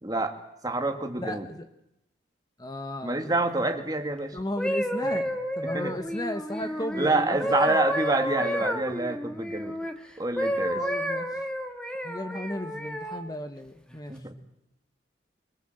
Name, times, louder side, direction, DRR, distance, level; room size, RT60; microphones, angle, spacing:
voice 1, 0.0-0.4 0.6-1.5 3.0-4.4 5.1-5.2 5.6-5.9 6.9-9.8 10.2-10.9 14.1-14.4, right 2 dB, 20° right, 5 dB, 2.2 m, -27 dB
voice 2, 1.2-1.7 2.6-3.3 4.3-7.8 10.7-11.4 12.0-14.2, left 1 dB, 20° left, 8 dB, 1.2 m, -35 dB
sound 1, 4.4-9.9 10.4-13.2 13.9-14.2, equal, 5° left, 1.8 m, -30 dB
25.0 x 23.0 x 7.9 m, 0.84 s
head